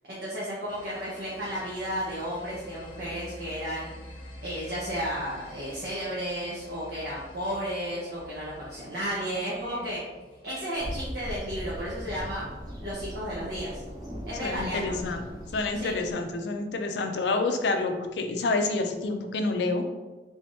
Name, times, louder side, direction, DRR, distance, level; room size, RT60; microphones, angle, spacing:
voice 1, 0.1-3.9 4.4-10.0 10.4-12.5 12.8-13.8 14.3-14.9 15.7-15.9, equal, 65° right, -7 dB, 0.9 m, -33 dB
sound 1, 0.7-16.1, left 1 dB, 30° left, 0.7 m, -49 dB
sound 2, 10.7-16.1, equal, 20° right, 0.8 m, -39 dB
voice 2, 14.4-15.2 15.5-19.8, left 3 dB, 70° left, 5 dB, 0.4 m, -28 dB
3.5 x 3.4 x 2.6 m, 1.2 s
head